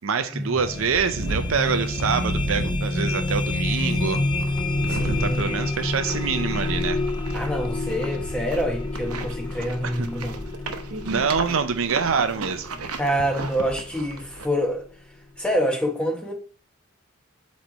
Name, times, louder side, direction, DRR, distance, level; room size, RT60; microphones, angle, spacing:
voice 1, 0.0-4.2 4.9-7.0 10.0-10.1 11.0-12.7, right 6 dB, 65° right, 0.5 m, -25 dB
sound 1, 0.5-14.6, left 2 dB, 20° left, 0.4 m, -29 dB
sound 2, 1.0-14.5, right 2 dB, 90° right, 0.8 m, -34 dB
voice 2, 4.9-5.6 7.3-10.4 13.0-14.8 15.4-16.3, equal, 5° left, 1.2 m, -26 dB
7.9 x 3.2 x 4.0 m
head